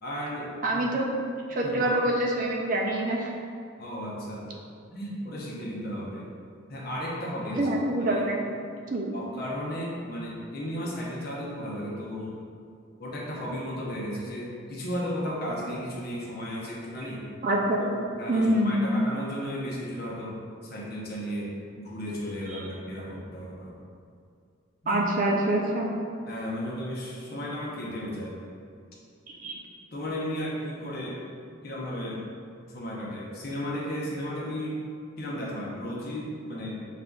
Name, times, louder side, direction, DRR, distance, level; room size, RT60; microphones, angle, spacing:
voice 1, 0.0-0.8 1.6-2.0 3.8-4.5 4.9-6.3 6.7-7.7 8.1-8.2 9.1-12.4 13.0-17.2 17.8-17.9 18.2-23.7 24.8-25.0 26.3-28.4 29.9-31.1 31.6-32.2 32.7-34.8 35.2-36.8, equal, 50° left, -4 dB, 0.8 m, -34 dB
voice 2, 0.6-1.1 1.5-3.3 7.5-8.5 8.9-9.1 17.4-18.8 22.5-22.6 24.9-25.9 29.3-29.6, right 1 dB, 40° right, -1 dB, 0.4 m, -26 dB
6.5 x 2.4 x 2.3 m, 2.3 s
head